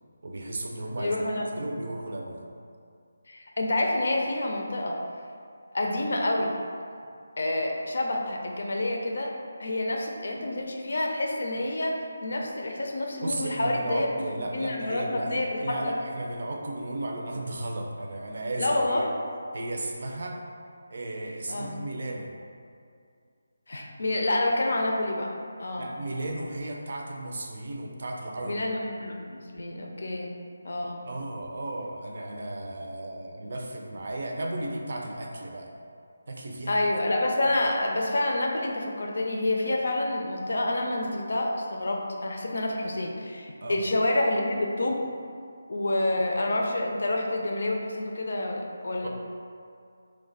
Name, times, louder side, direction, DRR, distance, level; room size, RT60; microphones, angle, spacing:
voice 1, 0.2-1.2 1.6-2.4 13.2-19.1 19.5-20.4 20.9-22.3 25.8-28.6 31.0-35.7 36.3-36.8 37.5-37.6 43.6-43.8 49.0-49.1, right 1 dB, 55° right, 1 dB, 0.5 m, -34 dB
voice 2, 1.0-1.7 3.3-5.0 5.7-6.5 7.4-9.3 9.6-16.0 18.6-19.1 21.5-21.7 23.7-25.3 25.6-25.9 28.4-30.3 30.6-31.0 36.7-45.0 45.7-49.1, left 1 dB, 65° left, 1 dB, 0.5 m, -28 dB
3.1 x 2.2 x 3.8 m, 2.3 s
figure-of-eight pair, 165°, 0 cm